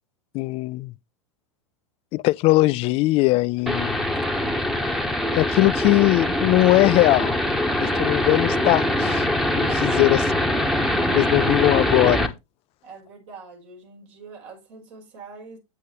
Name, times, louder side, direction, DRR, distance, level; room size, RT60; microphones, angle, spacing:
voice 1, 0.3-0.9 2.1-4.0 5.3-7.4 8.0-9.2 9.6-10.2 11.1-12.3, left 20 dB, 35° left, 0.4 m, -20 dB
sound 1, 3.7-12.3, left 1 dB, ahead, 1.1 m, -23 dB
voice 2, 9.6-10.0 12.8-15.6, right 4 dB, 65° right, 5.5 m, -43 dB
8.4 x 8.3 x 3.3 m
hypercardioid pair, 95°, 16 cm